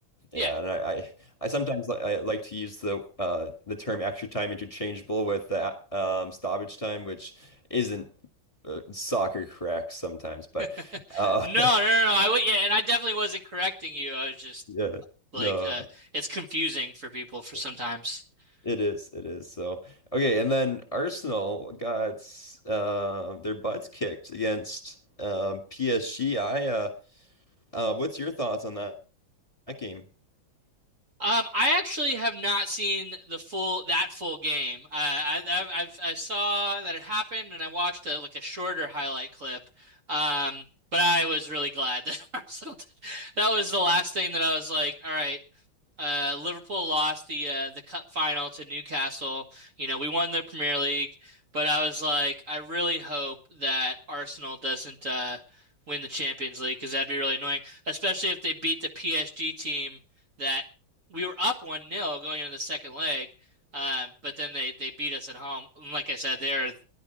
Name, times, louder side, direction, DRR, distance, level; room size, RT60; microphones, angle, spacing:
voice 1, 0.3-1.1 1.4-8.1 8.6-11.7 14.7-15.0 15.3-15.8 18.6-27.0 27.7-28.9 29.7-30.0, right 1 dB, 15° left, 5 dB, 1.9 m, -30 dB
voice 2, 11.1-14.6 15.3-15.8 16.1-18.2 31.2-40.6 40.9-42.8 43.0-45.4 46.0-55.4 55.9-60.0 60.4-60.6 61.1-63.3 63.7-66.7, equal, 40° right, 3 dB, 1.9 m, -29 dB
18.0 x 11.0 x 4.7 m, 0.35 s
omnidirectional pair, 2.2 m